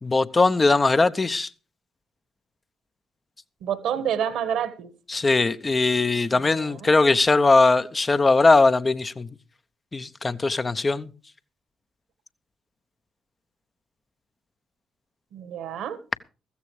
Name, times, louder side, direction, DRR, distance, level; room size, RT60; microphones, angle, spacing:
voice 1, 0.0-1.5 5.1-9.3 9.9-11.1, left 3 dB, 30° left, 0.9 m, -20 dB
voice 2, 3.6-4.9 6.3-6.9 15.3-16.0, right 9 dB, 65° right, 1.5 m, -29 dB
15.5 x 14.5 x 3.3 m
figure-of-eight pair, 40°, 0 cm